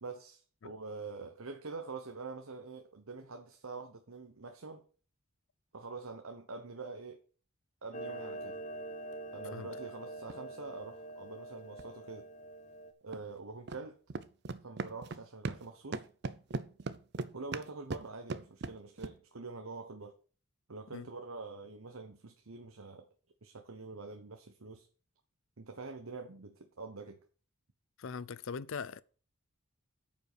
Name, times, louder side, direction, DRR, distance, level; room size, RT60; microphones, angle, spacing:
voice 1, 0.0-4.8 5.7-7.2 7.8-8.6 9.3-12.3 13.0-14.0 14.6-16.0 17.3-20.1 20.7-23.1 23.4-24.9 25.6-27.2, right 3 dB, 75° right, 1.0 m, -45 dB
Clock, 7.9-12.9, right 1 dB, 35° left, 0.9 m, -45 dB
sound 1, 10.2-10.4 11.8-11.9 13.1-13.2 13.7-13.8 14.1-15.7 15.9-19.2, right 3 dB, 50° right, 0.5 m, -39 dB
voice 2, 28.0-29.0, left 5 dB, 65° left, 0.5 m, -41 dB
9.1 x 5.4 x 6.7 m
head